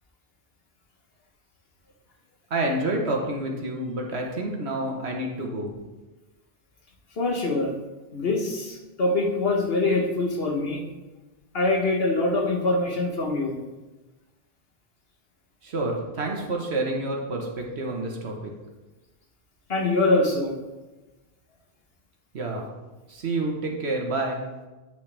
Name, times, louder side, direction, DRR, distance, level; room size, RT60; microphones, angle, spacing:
voice 1, 2.5-5.7 15.6-18.5 22.3-22.7 23.1-24.4, right 2 dB, 90° right, 1 dB, 1.5 m, -28 dB
voice 2, 7.2-7.7 8.1-10.8 11.5-13.6 19.7-20.5, left 2 dB, 70° left, 0 dB, 1.5 m, -24 dB
9.2 x 6.2 x 3.4 m, 1.1 s
omnidirectional pair, 1.1 m